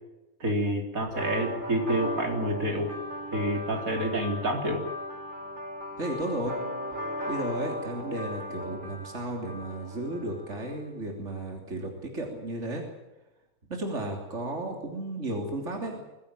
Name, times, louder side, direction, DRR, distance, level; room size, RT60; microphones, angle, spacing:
voice 1, 0.4-2.9 3.3-4.8, right 1 dB, 65° right, 2 dB, 4.1 m, -28 dB
sound 1, 1.1-10.7, equal, 30° right, 6.3 m, -37 dB
voice 2, 6.0-6.6 7.3-12.8 13.7-16.0, right 1 dB, 50° right, 2 dB, 3.6 m, -34 dB
22.5 x 16.0 x 9.0 m, 1.0 s
omnidirectional pair, 1.6 m